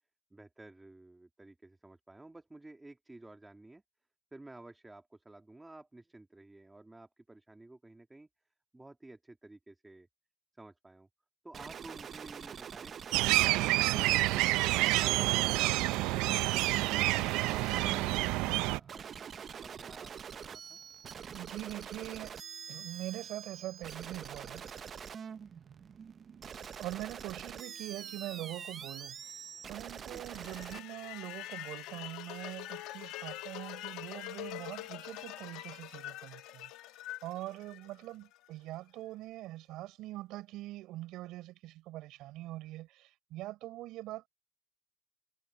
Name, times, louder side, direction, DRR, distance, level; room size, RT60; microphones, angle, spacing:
voice 1, 0.3-3.8 4.3-8.3 8.7-10.1 10.6-11.1 11.4-12.9 15.8-20.8 30.0-30.2, right 2 dB, 10° right, 2.3 m, -53 dB
sound 1, 11.5-30.8, right 7 dB, 30° right, 0.6 m, -45 dB
sound 2, 13.1-18.8, right 19 dB, 90° right, 0.4 m, -28 dB
voice 2, 21.3-22.4 22.7-25.0 26.8-29.3 29.7-36.7 37.2-44.3, right 16 dB, 70° right, 3.9 m, -43 dB
sound 3, 30.3-38.4, left 16 dB, 80° left, 1.5 m, -44 dB
cardioid pair, 160°, 0 cm